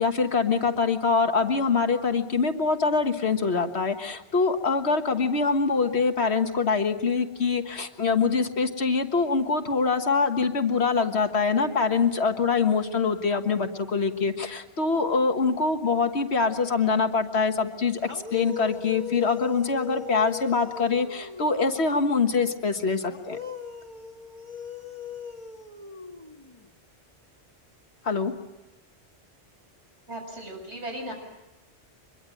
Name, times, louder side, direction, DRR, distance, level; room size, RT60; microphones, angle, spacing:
voice 1, 0.0-18.0 18.3-23.4 28.0-28.3, left 4 dB, 75° left, 6 dB, 1.7 m, -24 dB
sound 1, 18.0-21.7 23.1-26.7, left 7 dB, 25° left, 1.8 m, -39 dB
voice 2, 30.1-31.1, right 1 dB, 85° right, 2 dB, 7.2 m, -36 dB
25.0 x 22.0 x 9.1 m, 1.0 s
omnidirectional pair, 1.1 m